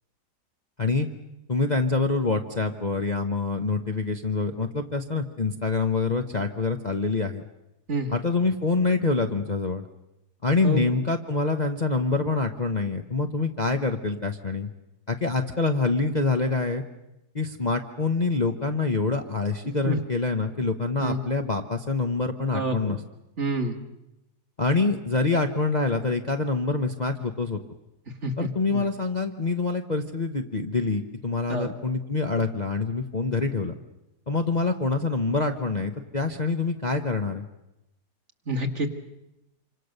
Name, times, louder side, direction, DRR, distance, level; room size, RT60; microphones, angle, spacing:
voice 1, 1.5-7.4 8.1-9.9 10.4-14.7 15.1-16.8 17.3-23.0 24.6-27.6 28.4-33.7 34.3-37.5, left 3 dB, 30° left, 4 dB, 1.0 m, -26 dB
voice 2, 7.9-8.2 10.6-10.8 19.9-20.0 21.0-21.2 22.5-23.0 23.4-23.8 28.2-28.9 31.5-31.7 38.5-38.9, right 1 dB, 45° right, 4 dB, 2.3 m, -28 dB
27.0 x 25.5 x 6.7 m, 0.91 s
omnidirectional pair, 1.7 m